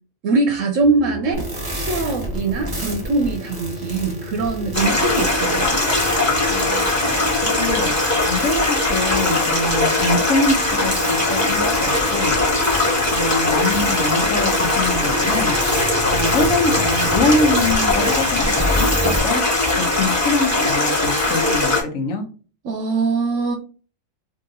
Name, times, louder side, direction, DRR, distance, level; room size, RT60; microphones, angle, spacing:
voice 1, 0.2-1.4 1.7-5.8 21.2-21.5 22.6-23.5, right 3 dB, 75° right, 5 dB, 0.9 m, -22 dB
sound 1, 0.8-9.9 10.6-19.3, equal, 50° left, 0.7 m, -35 dB
sound 2, 1.3-19.2, equal, 20° right, 1.0 m, -31 dB
voice 2, 2.6-2.9 4.8-5.2 6.5-6.8 7.6-7.9 8.2-12.4 13.1-15.5 16.1-18.5 18.8-19.4 20.0-22.2, left 2 dB, 75° left, 4 dB, 1.1 m, -24 dB
Stream, 4.7-21.8, left 2 dB, 15° left, 1.2 m, -20 dB
2.9 x 2.7 x 3.7 m, 0.38 s
omnidirectional pair, 1.4 m